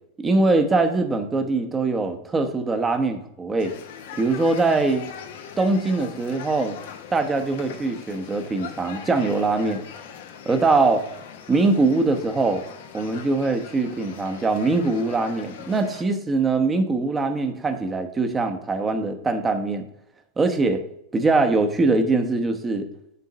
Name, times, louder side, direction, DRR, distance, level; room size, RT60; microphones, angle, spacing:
voice 1, 0.2-3.7 4.2-5.1 5.6-6.8 7.1-9.8 10.5-11.0 11.5-12.6 12.9-19.8 20.4-20.8 21.1-22.9, right 3 dB, 20° right, 6 dB, 0.9 m, -22 dB
sound 1, 3.6-16.0, left 8 dB, 70° left, 0.8 m, -41 dB
6.8 x 3.7 x 6.4 m, 0.78 s
hypercardioid pair, 110°, 0 cm